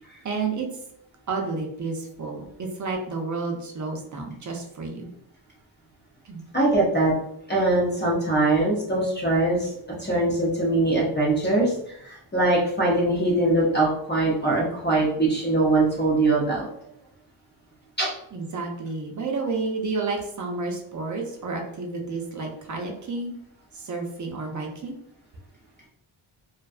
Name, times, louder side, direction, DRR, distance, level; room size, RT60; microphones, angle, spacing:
voice 1, 0.2-0.7 1.3-5.1 6.2-6.4 18.3-23.3 23.7-25.0, right 3 dB, 40° right, 2 dB, 0.5 m, -31 dB
voice 2, 6.5-7.1 7.5-9.7 10.0-16.7 18.0-18.1, right 2 dB, 20° left, -5 dB, 0.6 m, -22 dB
2.5 x 2.2 x 2.3 m, 0.72 s
wide cardioid pair, 110°, 49 cm